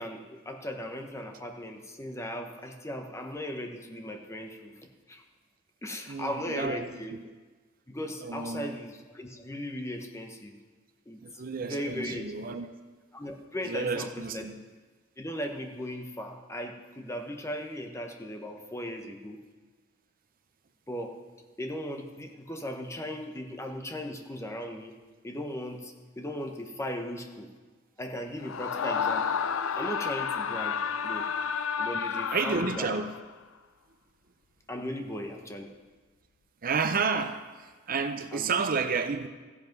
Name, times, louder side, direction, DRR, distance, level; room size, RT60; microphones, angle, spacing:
voice 1, 0.0-4.7 5.1-5.2 5.8-7.2 7.9-10.5 11.1-12.3 13.1-14.5 15.2-19.4 20.9-21.2 21.6-24.9 25.2-27.5 28.0-29.4 29.7-31.3 31.8-32.9 34.7-35.7 38.3-38.5, equal, 15° left, 4 dB, 1.0 m, -37 dB
voice 2, 6.1-7.2 8.2-8.8 11.2-12.7 13.6-14.5 32.3-33.1 36.6-39.3, right 5 dB, 45° right, 9 dB, 0.6 m, -31 dB
Screaming, 28.4-33.3, left 6 dB, 80° left, 0.5 m, -31 dB
14.5 x 8.0 x 5.3 m, 1.4 s
head